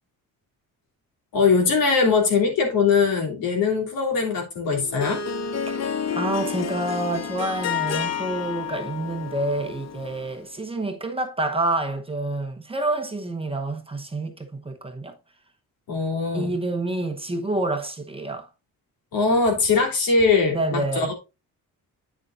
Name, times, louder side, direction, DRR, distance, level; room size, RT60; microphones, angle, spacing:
voice 1, 1.3-5.2 15.9-16.6 19.1-21.1, left 4 dB, 75° left, 3.4 m, -21 dB
Harp, 4.6-10.4, left 7 dB, 50° left, 0.8 m, -30 dB
voice 2, 6.1-15.1 16.3-18.5 20.5-21.1, right 2 dB, 15° right, 0.9 m, -28 dB
9.2 x 6.7 x 2.5 m
cardioid pair, 160°, 35 cm